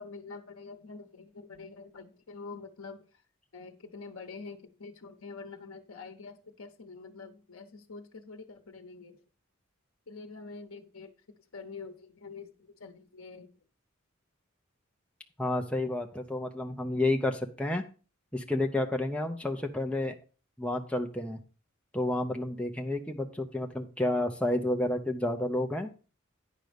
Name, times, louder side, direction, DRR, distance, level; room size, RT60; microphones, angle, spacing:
voice 1, 0.0-3.0 3.5-9.2 10.1-11.1 11.5-12.5 12.8-13.5, left 4 dB, 80° left, 6 dB, 0.9 m, -46 dB
voice 2, 15.4-17.8 18.3-20.1 20.6-21.4 21.9-25.9, left 1 dB, 5° left, 3 dB, 0.7 m, -30 dB
9.2 x 5.3 x 5.0 m, 0.35 s
head